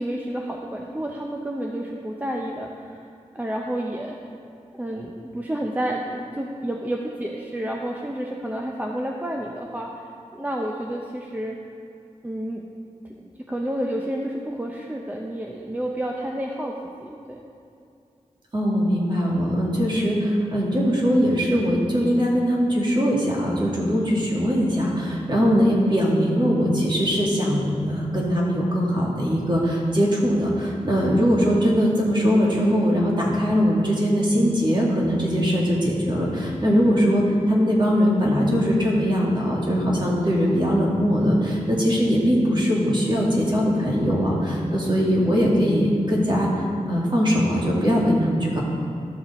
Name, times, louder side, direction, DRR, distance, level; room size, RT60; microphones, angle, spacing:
voice 1, 0.0-3.0 3.3-4.2 4.8-9.9 10.3-11.6 12.2-12.6 13.2-17.4, right 1 dB, 15° right, 0 dB, 0.6 m, -30 dB
voice 2, 18.5-46.5 46.9-48.6, equal, 35° right, -4 dB, 2.0 m, -21 dB
12.5 x 6.4 x 4.1 m, 2.5 s
wide cardioid pair, 100°, 13 cm